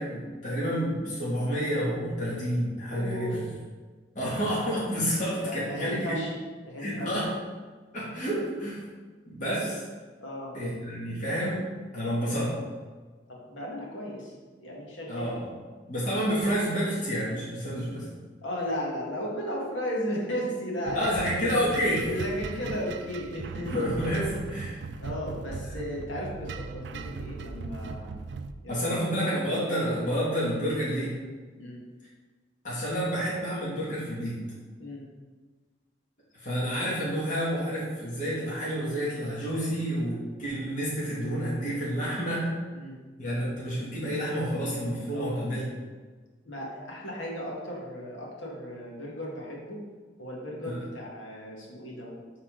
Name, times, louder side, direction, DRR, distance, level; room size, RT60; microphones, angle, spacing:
voice 1, 0.0-3.4 4.2-6.2 6.8-7.3 7.9-8.8 9.3-9.8 10.5-11.6 11.9-12.5 15.1-15.5 15.9-18.0 20.9-22.1 23.7-24.8 28.7-31.1 32.6-34.4 36.3-42.4 43.2-45.7 50.6-50.7, equal, 40° left, -8 dB, 2.2 m, -29 dB
voice 2, 2.9-3.6 5.4-6.3 6.6-7.2 10.2-10.6 13.3-15.3 18.4-21.6 22.1-23.8 25.0-28.2 28.6-29.0 31.6-31.8 34.8-35.0 42.7-42.9 45.1-45.4 46.4-49.8 50.2-52.2, equal, 85° left, -3 dB, 1.8 m, -35 dB
sound 1, 20.9-28.5, right 4 dB, 65° right, 0.4 m, -38 dB
8.6 x 4.2 x 3.9 m, 1.4 s
head